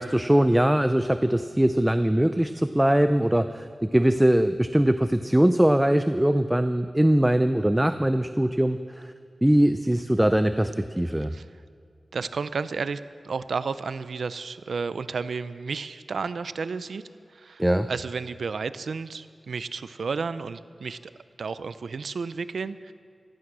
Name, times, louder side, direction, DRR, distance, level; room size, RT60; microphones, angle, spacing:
voice 1, 0.0-9.1 9.4-11.3 17.6-17.9, right 1 dB, 10° right, 10 dB, 0.4 m, -21 dB
voice 2, 12.1-17.0 17.3-21.1 21.4-22.9, right 5 dB, 80° right, 14 dB, 0.5 m, -32 dB
16.0 x 14.5 x 6.1 m, 2.3 s
wide cardioid pair, 120°, 0 cm